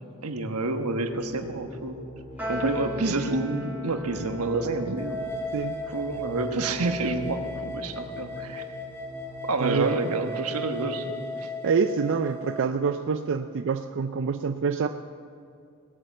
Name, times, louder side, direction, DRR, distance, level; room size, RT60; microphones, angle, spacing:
voice 1, 0.2-2.0 2.5-5.2 5.9-8.6 9.4-11.3, right 2 dB, 85° right, 6 dB, 1.2 m, -28 dB
sound 1, 1.1-9.5, equal, 35° left, 3.5 m, -45 dB
Piano, 2.4-8.9, left 1 dB, 10° right, 2.6 m, -40 dB
sound 2, 5.0-12.7, equal, 10° left, 2.0 m, -36 dB
voice 2, 11.4-14.9, right 5 dB, 60° right, 8 dB, 0.4 m, -26 dB
18.5 x 8.8 x 7.2 m, 2.5 s
head